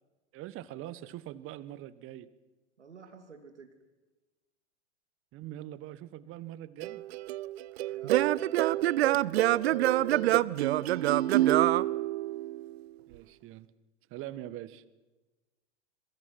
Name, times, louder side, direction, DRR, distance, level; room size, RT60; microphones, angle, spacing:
voice 1, 0.3-2.3 5.3-7.0 13.1-13.7 14.1-14.8, right 13 dB, 40° right, 16 dB, 1.4 m, -43 dB
voice 2, 2.8-3.7 7.9-11.7, right 4 dB, 85° right, 6 dB, 2.7 m, -50 dB
Singing / Plucked string instrument, 6.8-12.7, right 15 dB, 65° right, 0.7 m, -26 dB
27.0 x 23.0 x 6.0 m, 1.2 s
hypercardioid pair, 95°, 34 cm